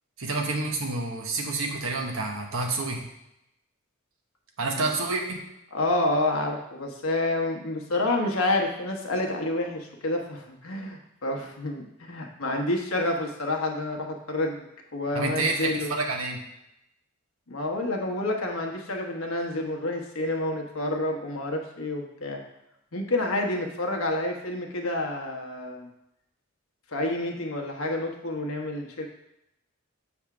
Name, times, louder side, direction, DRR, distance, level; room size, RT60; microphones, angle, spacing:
voice 1, 0.2-3.0 4.6-5.4 15.1-16.4, right 3 dB, 75° right, 2 dB, 1.2 m, -28 dB
voice 2, 5.7-15.9 17.5-22.4 22.9-25.9 26.9-29.1, left 2 dB, 80° left, 1 dB, 1.2 m, -29 dB
7.2 x 3.5 x 5.9 m, 0.85 s
head